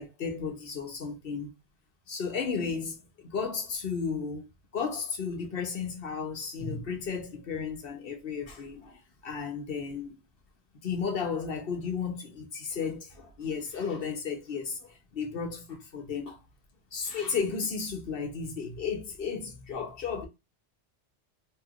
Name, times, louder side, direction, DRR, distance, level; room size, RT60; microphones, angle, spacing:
voice 1, 0.0-1.5 2.1-4.4 4.7-10.1 10.8-16.4 16.9-20.3, left 5 dB, 60° left, 1.0 m, -34 dB
3.2 x 2.7 x 2.4 m
omnidirectional pair, 1.1 m